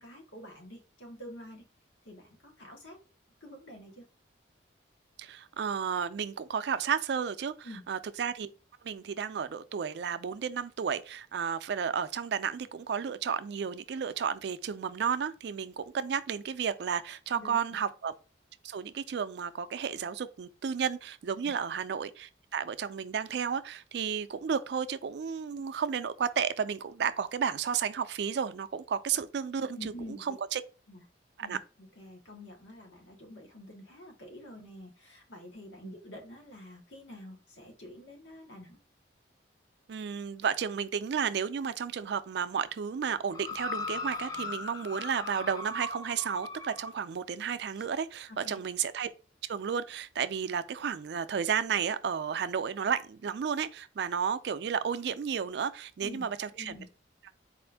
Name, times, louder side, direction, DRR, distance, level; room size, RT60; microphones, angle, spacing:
voice 1, 0.0-1.6 2.0-3.0 3.4-4.0 7.6-7.8 17.3-17.6 29.8-30.2 30.9-31.0 31.4-38.8 48.3-48.6 56.0-56.3 56.5-56.9, left 1 dB, 85° left, 1.4 m, -47 dB
voice 2, 5.2-8.5 8.8-18.1 18.6-30.6 31.4-31.6 35.8-35.9 39.9-49.1 49.5-56.7, right 7 dB, 65° right, 0.3 m, -32 dB
sound 1, 43.3-47.0 47.8-47.9, left 3 dB, 20° left, 0.4 m, -38 dB
4.2 x 2.5 x 3.3 m
head